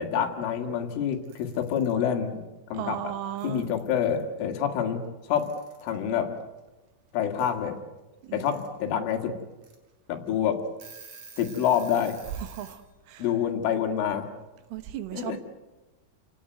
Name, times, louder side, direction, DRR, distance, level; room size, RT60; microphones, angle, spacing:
voice 1, 0.0-3.1 3.4-5.0 5.3-5.5 5.8-6.3 7.1-7.8 8.3-9.3 10.1-10.6 11.4-12.2 13.2-14.3 15.1-15.4, left 8 dB, 80° left, 4.6 m, -27 dB
Alarm / Clock, 1.1-1.9 3.1-3.2 3.4-4.2 5.3-6.0 7.4-7.5 8.2-8.7 9.1-9.2 9.6-9.7 10.3-10.4 10.6-12.8, right 5 dB, 40° right, 4.2 m, -49 dB
voice 2, 2.7-3.7 8.2-8.6 12.4-12.8 13.1-13.3 14.7-15.4, right 11 dB, 85° right, 3.8 m, -35 dB
29.5 x 17.5 x 9.3 m
omnidirectional pair, 5.6 m